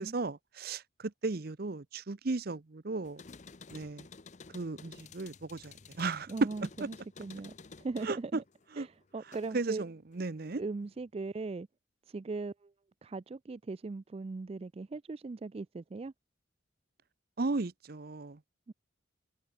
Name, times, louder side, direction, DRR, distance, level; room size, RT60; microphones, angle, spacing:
voice 1, 0.0-3.2 3.7-4.1 4.5-6.7 8.0-8.4 8.7-8.9 9.5-10.6 17.4-18.4, right 3 dB, 50° right, 0.7 m, -35 dB
sound 1, 3.0-9.8 10.1-11.0, left 4 dB, 40° left, 0.7 m, -53 dB
voice 2, 6.3-8.4 8.8-9.8 10.6-11.7 12.1-12.7 13.0-16.1 18.7-18.8, right 3 dB, 30° right, 0.3 m, -39 dB
head